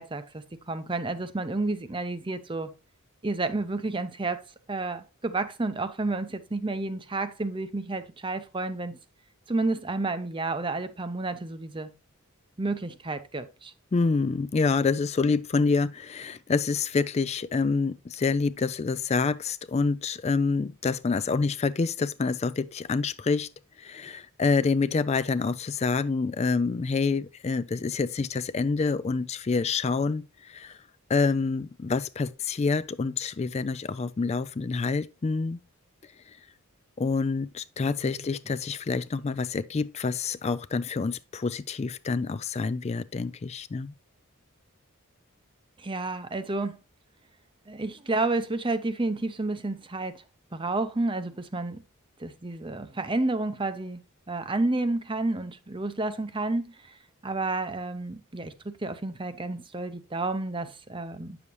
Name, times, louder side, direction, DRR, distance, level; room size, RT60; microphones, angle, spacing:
voice 1, 0.0-2.7 3.2-4.4 4.7-9.0 9.5-11.9 12.6-13.7 38.0-38.3 45.8-46.8 47.7-50.2 50.5-51.8 52.2-54.0 54.3-57.0 57.2-61.4, right 2 dB, 20° right, 0.7 m, -30 dB
voice 2, 13.9-23.5 23.8-30.8 31.1-35.6 36.3-36.4 37.0-43.9, left 4 dB, 30° left, 0.3 m, -27 dB
9.6 x 7.0 x 3.0 m
head